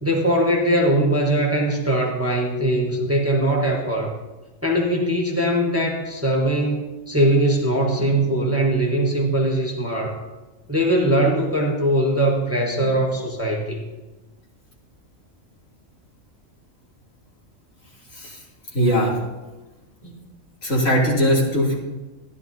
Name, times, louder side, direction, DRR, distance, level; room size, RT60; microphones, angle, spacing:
voice 1, 0.0-4.1 4.6-10.2 10.7-13.8, right 1 dB, 10° right, 0 dB, 1.1 m, -21 dB
voice 2, 18.7-19.2 20.0-20.1 20.6-21.8, equal, 75° left, -4 dB, 3.0 m, -20 dB
14.0 x 11.0 x 2.8 m, 1.1 s
omnidirectional pair, 1.4 m